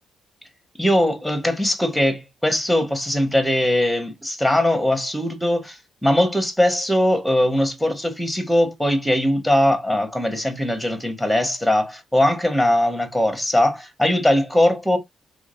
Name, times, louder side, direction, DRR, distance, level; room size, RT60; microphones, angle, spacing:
voice 1, 0.8-15.0, left 1 dB, ahead, 1.5 m, -20 dB
3.7 x 3.4 x 2.5 m
cardioid pair, 90°, 0 cm